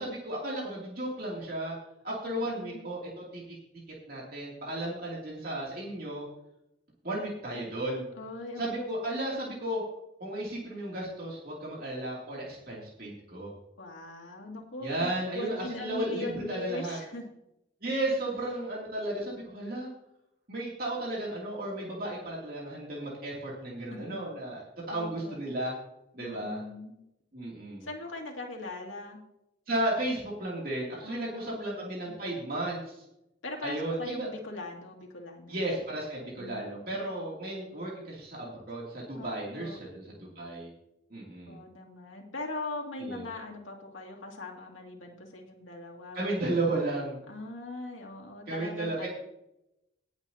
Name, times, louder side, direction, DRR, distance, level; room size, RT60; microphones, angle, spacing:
voice 1, 0.0-1.8 2.0-3.4 4.1-6.2 7.0-8.1 8.6-9.8 10.2-13.5 14.8-17.0 17.8-19.9 20.5-24.6 24.9-25.7 26.1-26.6 27.3-27.9 29.7-33.0 33.6-34.3 35.5-40.7 41.1-41.6 43.0-43.2 46.1-47.2 48.5-49.1, right 1 dB, 50° right, -5 dB, 2.9 m, -34 dB
voice 2, 2.3-2.8 8.1-8.9 13.8-17.2 23.9-24.2 24.9-25.4 26.2-27.0 27.8-29.2 31.0-32.1 33.4-35.6 36.4-37.0 39.2-39.8 41.5-46.6 47.3-49.1, left 2 dB, 80° left, 0 dB, 2.5 m, -40 dB
18.5 x 8.2 x 2.9 m, 0.84 s
head